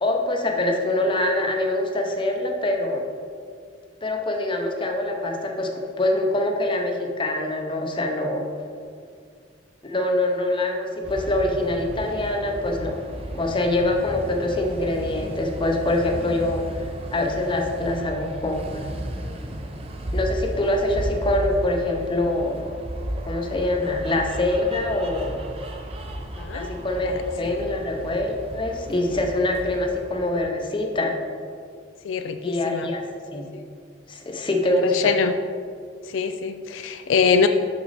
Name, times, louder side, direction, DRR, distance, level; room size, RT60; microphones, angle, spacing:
voice 1, 0.0-3.0 4.0-8.5 9.8-13.0 13.3-18.6 20.1-22.7 23.2-25.4 26.5-31.2 32.4-33.0 33.3-33.5 34.1-35.1, left 1 dB, 25° left, 2 dB, 0.7 m, -24 dB
sound 1, 11.0-30.5, right 1 dB, 30° right, 0.6 m, -34 dB
voice 2, 26.4-26.7 27.0-27.6 32.0-32.9 33.3-33.7 34.6-35.3 36.0-37.5, left 6 dB, 80° left, 8 dB, 0.4 m, -24 dB
6.1 x 6.1 x 4.1 m, 2.2 s
head